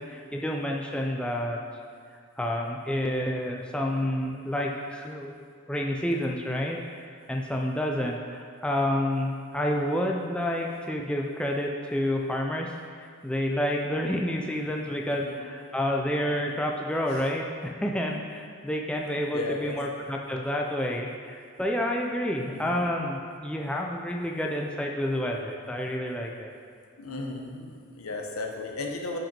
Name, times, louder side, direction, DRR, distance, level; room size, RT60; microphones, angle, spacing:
voice 1, 0.0-1.6 2.4-6.8 7.3-12.7 13.0-26.5, left 1 dB, 5° left, 0 dB, 0.4 m, -29 dB
voice 2, 19.3-19.8 22.3-22.7 27.0-29.2, left 3 dB, 85° left, 2 dB, 0.9 m, -35 dB
5.8 x 5.1 x 5.2 m, 2.2 s
head